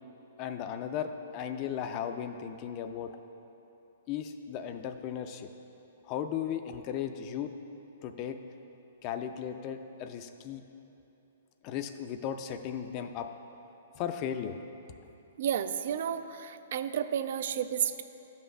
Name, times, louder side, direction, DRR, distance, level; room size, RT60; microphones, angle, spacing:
voice 1, 0.4-3.2 4.1-5.5 6.0-7.5 8.0-8.4 9.0-10.6 11.6-13.3 13.9-14.6, left 9 dB, 35° left, 7 dB, 0.3 m, -36 dB
voice 2, 15.4-18.0, right 9 dB, 60° right, 11 dB, 0.3 m, -31 dB
12.0 x 5.5 x 2.2 m, 3.0 s
hypercardioid pair, 140°, 0 cm